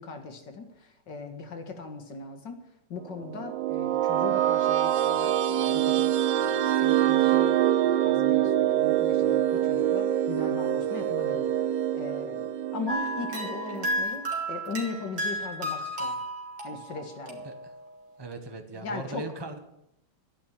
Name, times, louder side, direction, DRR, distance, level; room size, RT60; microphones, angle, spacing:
voice 1, 0.0-2.6 2.9-16.2 16.6-17.5 18.7-19.2, left 4 dB, 80° left, 5 dB, 2.5 m, -39 dB
sound 1, 3.2-14.0, right 11 dB, 90° right, 1.4 m, -25 dB
sound 2, 12.9-18.0, equal, 65° right, 2.9 m, -33 dB
voice 2, 18.2-19.6, right 2 dB, 15° right, 6 dB, 1.3 m, -38 dB
12.0 x 10.0 x 8.7 m, 0.83 s
omnidirectional pair, 1.9 m